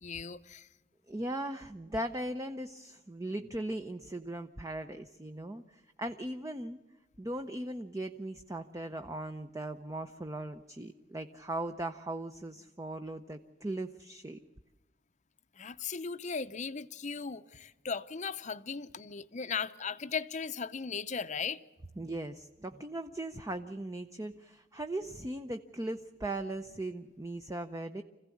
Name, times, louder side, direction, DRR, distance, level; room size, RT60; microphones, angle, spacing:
voice 1, 0.0-0.7 15.6-21.6, left 5 dB, 40° left, 0.7 m, -37 dB
voice 2, 1.1-6.8 7.2-14.4 22.0-28.0, right 1 dB, 15° right, 0.6 m, -38 dB
26.0 x 16.0 x 8.4 m
head